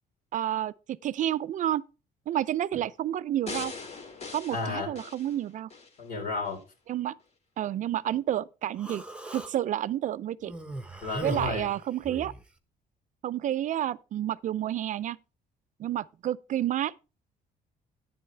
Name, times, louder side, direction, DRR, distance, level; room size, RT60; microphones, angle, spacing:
voice 1, 0.3-0.7 1.0-1.8 2.3-3.7 4.3-5.7 6.9-7.1 7.6-9.0 9.3-10.5 11.2-12.3 13.2-15.2 15.8-16.9, right 12 dB, 50° right, 0.4 m, -30 dB
sound 1, 3.5-6.0 6.5-6.6, left 4 dB, 40° left, 2.0 m, -41 dB
voice 2, 4.5-4.9 6.0-6.6 11.0-11.7, left 3 dB, 60° left, 3.9 m, -32 dB
Human voice, 8.8-9.5 10.4-12.4, right 2 dB, 5° right, 1.1 m, -38 dB
10.0 x 9.5 x 3.2 m
cardioid pair, 110°, 17 cm